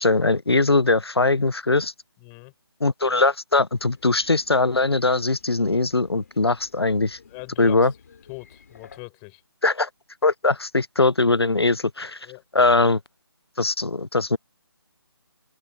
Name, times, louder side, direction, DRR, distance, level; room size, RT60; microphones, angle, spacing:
voice 1, 0.0-1.9 2.8-7.2 7.6-7.9 9.6-9.9 10.2-12.3 12.5-13.0 13.6-14.4, left 3 dB, 85° left, 0.7 m, -21 dB
voice 2, 2.2-2.5 7.3-7.9 8.3-9.4 12.2-12.4, left 40 dB or more, 15° left, 5.5 m, -41 dB
sound 1, 3.7-9.0, left 6 dB, 40° left, 3.2 m, -52 dB
open air
figure-of-eight pair, 150°, 13 cm